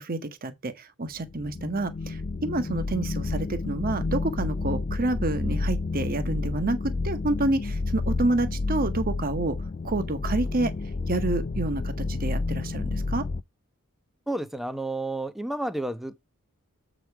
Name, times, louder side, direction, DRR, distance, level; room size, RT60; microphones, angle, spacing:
voice 1, 0.0-9.6 9.8-10.7 11.1-13.2, right 2 dB, 40° right, 1.0 m, -28 dB
sound 1, 1.2-13.4, left 3 dB, 35° left, 0.4 m, -30 dB
voice 2, 14.3-16.2, right 1 dB, ahead, 0.7 m, -31 dB
7.7 x 5.0 x 4.6 m
head